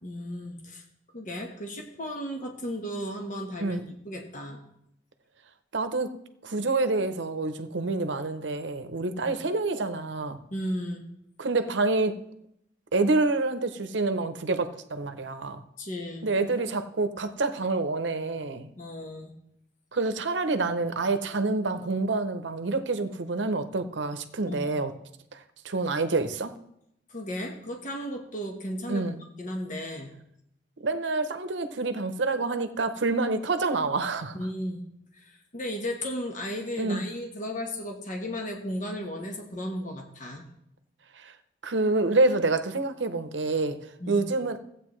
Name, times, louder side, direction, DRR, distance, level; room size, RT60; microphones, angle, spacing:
voice 1, 0.0-0.8 1.1-4.6 9.2-9.3 10.5-11.0 15.8-16.3 18.8-19.3 24.4-24.8 27.1-29.0 29.4-30.1 34.3-34.8 35.1-40.4 44.0-44.3, equal, 45° left, 2 dB, 1.2 m, -35 dB
voice 2, 5.7-6.1 6.4-10.4 11.4-12.3 12.9-15.6 16.2-18.7 19.9-24.9 25.3-26.5 28.9-29.2 30.8-34.4 36.8-37.1 41.2-41.3 41.6-44.6, right 3 dB, 80° right, 9 dB, 0.8 m, -27 dB
15.5 x 8.2 x 3.1 m, 0.77 s
head